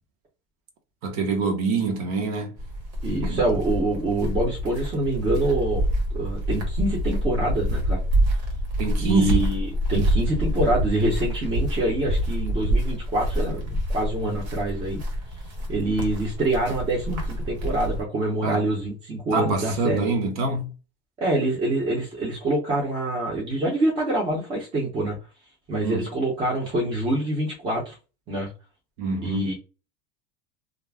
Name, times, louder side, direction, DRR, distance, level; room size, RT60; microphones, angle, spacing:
voice 1, 1.0-2.5 3.2-3.4 8.8-9.5 18.4-18.6 19.3-20.7 25.8-26.0 29.0-29.5, right 3 dB, 65° right, 0.8 m, -25 dB
sound 1, 2.6-18.0, equal, 85° right, 1.4 m, -27 dB
voice 2, 3.0-8.0 9.0-15.0 15.7-20.1 21.2-25.2 25.7-28.0 28.3-28.5 29.2-29.5, right 1 dB, 25° right, 0.7 m, -26 dB
2.4 x 2.1 x 3.3 m
cardioid pair, 175°, 21 cm